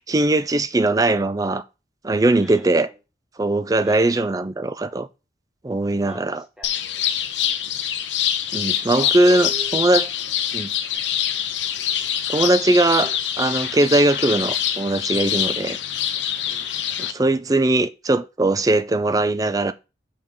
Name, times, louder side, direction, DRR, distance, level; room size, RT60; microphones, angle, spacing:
voice 1, 0.0-1.6 2.0-2.9 3.4-5.1 5.6-6.4 8.5-10.1 10.5-10.7 12.3-13.1 13.4-15.8 17.0-19.7, right 2 dB, 20° right, 0.4 m, -20 dB
voice 2, 2.4-3.0 3.8-4.3 6.1-7.1 7.4-8.0 9.0-9.8 10.2-10.6 13.0-13.2 16.5-16.7, equal, 5° right, 1.8 m, -43 dB
sound 1, 6.6-17.1, left 10 dB, 85° left, 0.8 m, -25 dB
7.0 x 4.7 x 3.7 m
head